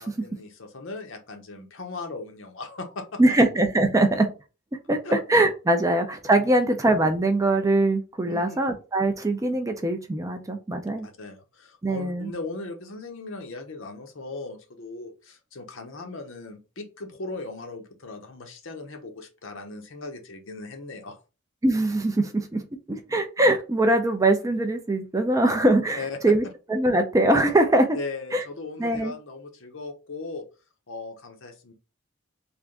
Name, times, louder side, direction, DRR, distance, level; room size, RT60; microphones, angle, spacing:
voice 1, 0.0-3.2 5.0-5.1 6.4-6.6 8.2-8.6 11.0-21.2 26.0-26.2 27.9-30.4 30.9-31.7, left 3 dB, 60° left, 5 dB, 0.7 m, -38 dB
voice 2, 3.2-4.3 4.9-11.1 11.8-12.3 21.6-22.6 23.1-26.4 26.7-28.0 28.3-28.4 28.8-29.1, right 1 dB, 15° right, 6 dB, 0.4 m, -22 dB
3.4 x 2.5 x 3.6 m, 0.32 s
head